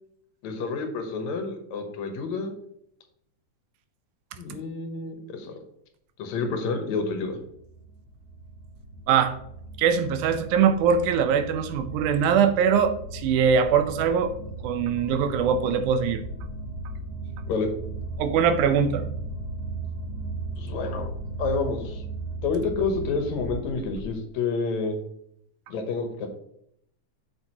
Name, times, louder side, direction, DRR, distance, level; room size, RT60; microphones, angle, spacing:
voice 1, 0.4-2.5 4.4-5.6 6.2-7.4 17.5-17.7 20.6-21.1 21.4-22.0 22.4-25.0 25.7-26.3, left 4 dB, 75° left, 5 dB, 2.3 m, -29 dB
sound 1, 6.9-24.1, right 2 dB, 45° right, 3.0 m, -37 dB
voice 2, 9.8-14.3 14.6-16.2 18.2-19.1, right 7 dB, 90° right, 10 dB, 2.2 m, -22 dB
7.6 x 6.9 x 2.9 m, 0.72 s
omnidirectional pair, 3.4 m